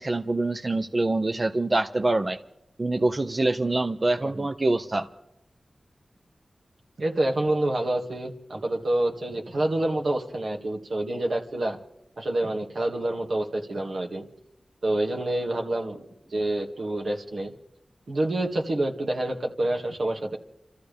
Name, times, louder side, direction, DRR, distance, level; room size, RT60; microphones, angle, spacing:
voice 1, 0.0-2.4 2.8-5.1, right 2 dB, 35° right, 7 dB, 0.7 m, -25 dB
voice 2, 7.0-11.8 12.2-14.3 14.8-16.0 16.3-17.5 18.1-20.4, right 1 dB, 80° right, 1 dB, 2.0 m, -27 dB
29.0 x 14.0 x 3.5 m, 0.84 s
wide cardioid pair, 80°, 0 cm